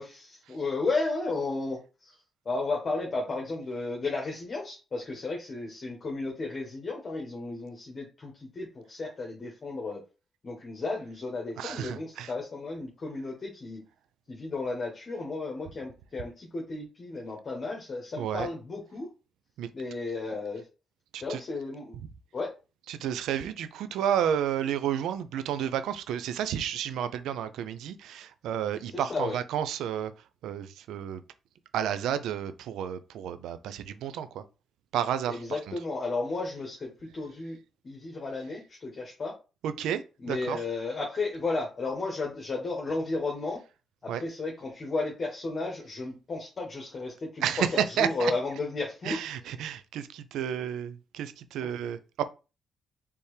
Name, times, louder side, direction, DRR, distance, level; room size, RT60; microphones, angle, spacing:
voice 1, 0.0-2.1 2.4-10.0 10.4-13.8 14.3-19.1 19.7-20.6 21.2-22.0 22.3-22.5 28.9-29.4 35.3-37.6 37.8-39.4 40.2-43.6 44.0-47.4 47.9-49.2, left 3 dB, 45° left, 1.3 m, -33 dB
voice 2, 11.6-12.3 18.2-18.5 19.6-19.7 21.1-21.4 22.9-30.1 30.4-31.2 31.7-34.4 34.9-35.7 39.6-40.6 44.1-44.2 47.4-48.3 49.0-52.2, right 9 dB, 85° right, 0.5 m, -31 dB
4.3 x 3.5 x 3.3 m
cardioid pair, 70°, 0 cm